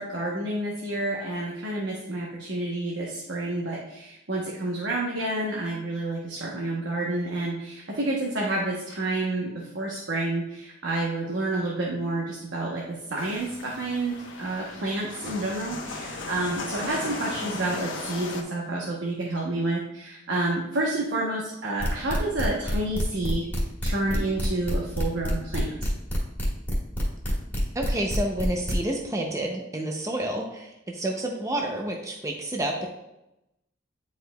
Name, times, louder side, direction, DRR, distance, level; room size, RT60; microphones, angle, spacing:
voice 1, 0.0-23.5 23.8-25.7, right 2 dB, 75° right, -3 dB, 1.0 m, -29 dB
sound 1, 13.2-18.4, left 3 dB, 85° left, 1.0 m, -37 dB
sound 2, 21.8-28.7, equal, 10° left, 1.7 m, -29 dB
voice 2, 27.7-32.9, right 1 dB, 15° right, 1 dB, 0.6 m, -29 dB
9.4 x 4.8 x 2.3 m, 0.90 s
head